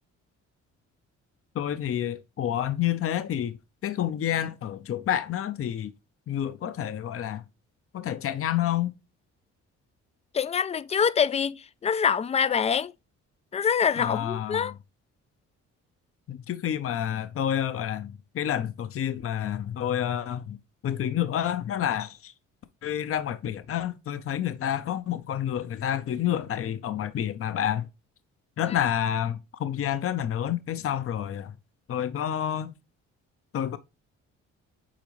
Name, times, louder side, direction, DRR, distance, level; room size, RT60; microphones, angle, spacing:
voice 1, 1.5-3.6 3.8-5.9 6.3-7.4 7.9-8.9 14.0-14.7 16.3-20.6 20.8-22.3 22.8-27.9 28.6-31.5 31.9-32.7 33.5-33.8, left 10 dB, 50° left, 0.7 m, -29 dB
voice 2, 10.3-12.9 13.5-14.7, left 7 dB, 20° left, 0.3 m, -25 dB
8.8 x 4.0 x 3.1 m
cardioid pair, 90°, 30 cm